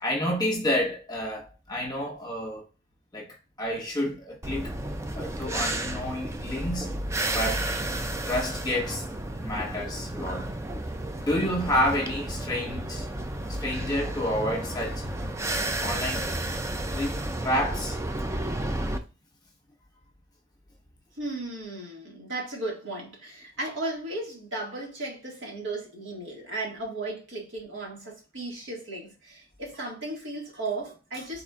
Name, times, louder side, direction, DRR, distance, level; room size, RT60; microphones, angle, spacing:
voice 1, 0.0-2.6 3.1-4.7 5.2-6.9 7.3-7.7 8.2-9.0 9.4-10.5 11.2-13.1 13.6-15.0 15.8-16.3 16.9-18.0, left 1 dB, 20° left, 1.2 m, -29 dB
sound 1, 4.4-19.0, right 1 dB, 15° right, 0.4 m, -32 dB
voice 2, 21.1-31.4, right 2 dB, 65° right, 1.9 m, -35 dB
4.3 x 4.1 x 2.4 m
head